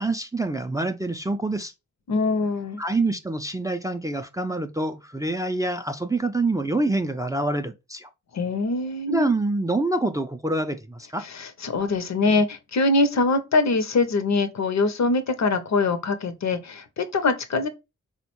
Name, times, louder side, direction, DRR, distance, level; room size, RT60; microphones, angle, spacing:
voice 1, 0.0-1.7 2.8-8.1 9.1-11.3, right 2 dB, 10° right, 0.4 m, -26 dB
voice 2, 2.1-2.8 8.3-9.3 11.2-17.7, left 3 dB, 65° left, 0.6 m, -23 dB
3.5 x 2.1 x 2.8 m
cardioid pair, 45°, 30 cm